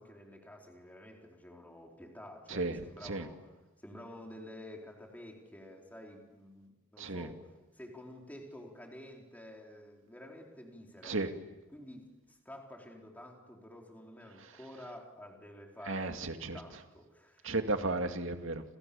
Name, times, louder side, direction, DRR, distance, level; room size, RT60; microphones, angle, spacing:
voice 1, 0.0-3.6 3.8-11.2 11.7-16.2 16.5-17.6, left 1 dB, 10° left, 0 dB, 4.4 m, -50 dB
voice 2, 7.0-7.3 11.0-11.3 15.9-16.6 17.4-18.6, right 2 dB, 65° right, 6 dB, 2.3 m, -34 dB
29.5 x 28.0 x 7.1 m, 1.1 s
head